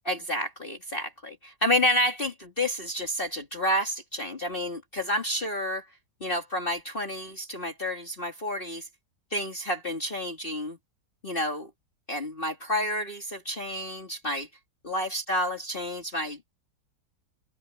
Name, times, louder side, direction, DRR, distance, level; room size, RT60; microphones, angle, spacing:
voice 1, 0.1-5.8 6.2-8.9 9.3-10.8 11.2-11.7 12.1-14.5 14.8-16.5, left 1 dB, 30° left, 2.3 m, -30 dB
open air
omnidirectional pair, 1.9 m